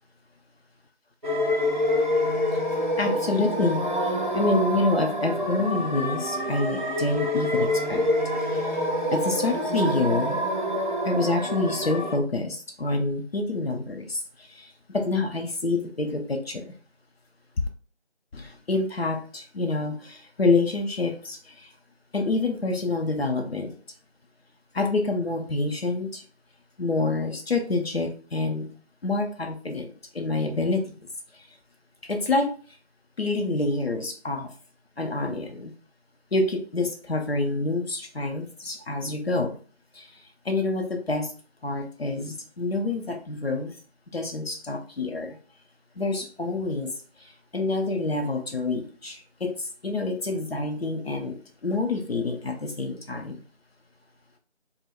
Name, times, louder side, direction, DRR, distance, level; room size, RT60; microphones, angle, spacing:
sound 1, 1.2-12.2, left 1 dB, 45° right, 0.4 m, -26 dB
voice 1, 3.0-8.0 8.4-10.4 11.0-16.7 18.3-21.7 22.1-23.8 24.7-26.2 26.8-28.7 29.0-30.8 31.3-31.4 32.0-32.5 33.2-34.5 35.0-35.7 36.3-39.6 39.9-40.1 40.4-41.3 41.6-43.8 44.1-45.4 46.0-46.9 47.2-53.4, left 3 dB, 60° left, 0.6 m, -27 dB
2.3 x 2.0 x 3.5 m
figure-of-eight pair, 180°, 35 cm